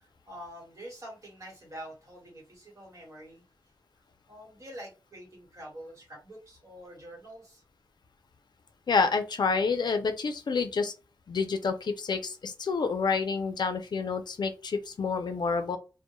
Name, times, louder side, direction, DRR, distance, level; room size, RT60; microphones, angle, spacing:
voice 1, 0.0-3.4 4.3-7.6, right 1 dB, 45° right, 1.2 m, -46 dB
voice 2, 8.9-10.9 11.3-15.8, left 4 dB, 70° left, 0.4 m, -28 dB
2.1 x 2.1 x 2.9 m
wide cardioid pair, 100°, 8 cm